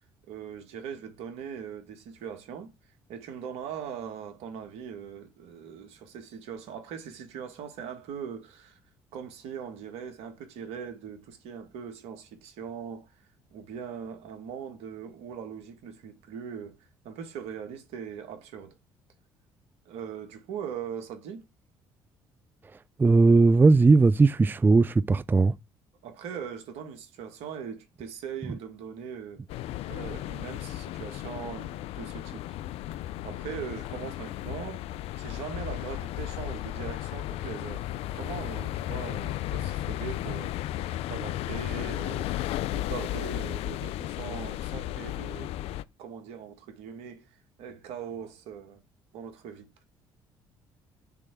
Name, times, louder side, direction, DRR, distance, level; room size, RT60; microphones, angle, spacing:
voice 1, 0.3-2.7 3.1-8.8 9.1-16.8 17.0-18.8 19.8-21.4 26.0-29.4 29.8-32.6 33.2-34.9 35.2-42.3 42.7-45.5 46.0-48.8 49.1-49.7, right 7 dB, 75° right, 1.6 m, -40 dB
voice 2, 23.0-25.5, right 3 dB, 20° right, 0.4 m, -18 dB
sound 1, 29.5-45.8, left 14 dB, 70° left, 0.4 m, -34 dB
6.8 x 3.3 x 6.1 m
supercardioid pair, 65°, 11 cm